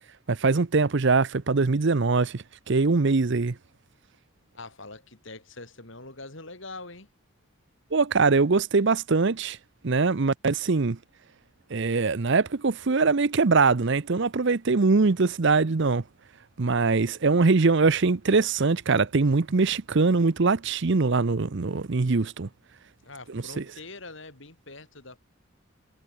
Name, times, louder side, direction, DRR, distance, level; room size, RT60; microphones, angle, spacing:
voice 1, 0.3-3.6 7.9-9.6 9.8-11.0 11.7-16.0 16.6-22.5 23.3-23.6, right 4 dB, 55° right, 0.7 m, -22 dB
voice 2, 4.5-7.1 23.0-25.2, left 3 dB, 60° left, 5.1 m, -43 dB
head